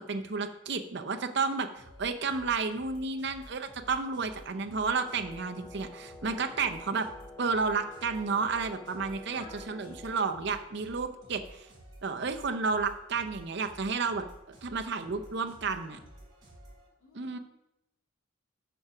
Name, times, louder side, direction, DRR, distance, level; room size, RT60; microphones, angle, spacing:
voice 1, 0.0-1.7 2.0-7.1 7.4-11.7 12.0-14.2 14.6-16.0 17.1-17.4, right 4 dB, 55° right, 6 dB, 0.6 m, -31 dB
sound 1, 1.7-16.9, right 1 dB, 20° right, 3.2 m, -53 dB
Wind instrument woodwind instrument, 4.9-10.3, left 2 dB, 10° left, 0.3 m, -49 dB
voice 2, 9.2-10.0 17.0-17.4, left 2 dB, 75° left, -5 dB, 2.9 m, -52 dB
7.0 x 4.9 x 5.9 m, 0.88 s
head